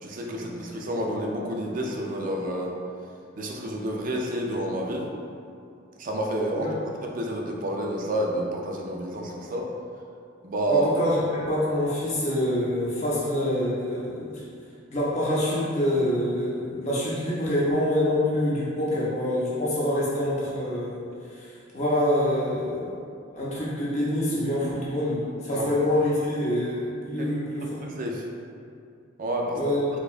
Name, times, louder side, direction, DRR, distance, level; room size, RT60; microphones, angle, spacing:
voice 1, 0.0-2.8 3.4-5.1 6.0-6.7 7.2-9.7 10.4-10.9 25.5-25.7 27.2-27.3 27.8-28.2 29.2-29.6, right 1 dB, 40° right, -1 dB, 0.4 m, -29 dB
voice 2, 10.7-14.4 14.9-21.0 21.4-21.5 21.7-23.0 23.3-27.7 29.5-29.8, left 1 dB, 35° left, -7 dB, 0.5 m, -26 dB
4.4 x 2.3 x 2.4 m, 2.4 s
head